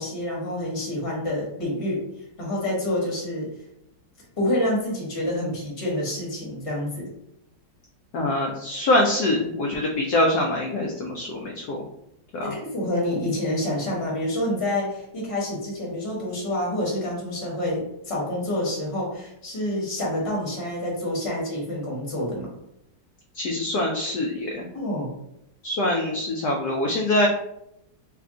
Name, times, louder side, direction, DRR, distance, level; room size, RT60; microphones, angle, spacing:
voice 1, 0.0-2.1 2.4-3.5 4.4-7.1 12.4-22.5 24.7-25.2, left 1 dB, 20° left, -5 dB, 1.0 m, -28 dB
voice 2, 8.1-11.8 12.3-12.5 23.3-24.7 25.6-27.3, left 1 dB, 75° left, 0 dB, 1.0 m, -24 dB
3.4 x 2.3 x 3.6 m, 0.79 s
omnidirectional pair, 2.2 m